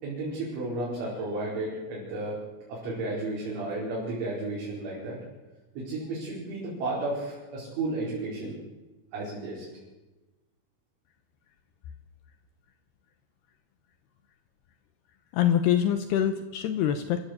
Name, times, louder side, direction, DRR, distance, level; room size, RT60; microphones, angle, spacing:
voice 1, 0.0-2.4 2.7-5.2 5.8-8.6 9.1-9.7, right 2 dB, 70° right, -6 dB, 7.2 m, -33 dB
voice 2, 15.3-17.3, left 10 dB, 85° left, 9 dB, 2.4 m, -25 dB
27.0 x 15.0 x 8.1 m, 1.2 s
omnidirectional pair, 5.8 m